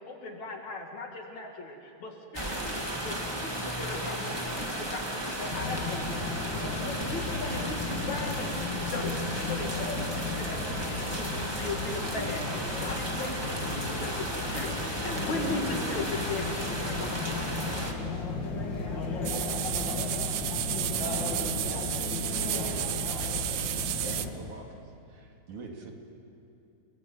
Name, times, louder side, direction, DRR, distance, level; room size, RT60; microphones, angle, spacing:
voice 1, 0.0-17.7, left 2 dB, 50° left, 2 dB, 3.6 m, -38 dB
sound 1, 2.3-17.9, right 1 dB, 10° right, 1.2 m, -35 dB
sound 2, 5.5-24.3, left 3 dB, 35° left, 2.4 m, -34 dB
sound 3, 19.2-24.3, right 13 dB, 90° right, 1.5 m, -32 dB
voice 2, 21.7-23.5, left 1 dB, 75° left, -3 dB, 6.1 m, -42 dB
voice 3, 23.7-24.8 25.1-25.9, right 3 dB, 55° right, 1 dB, 3.6 m, -45 dB
29.5 x 19.5 x 8.9 m, 2.7 s
omnidirectional pair, 4.4 m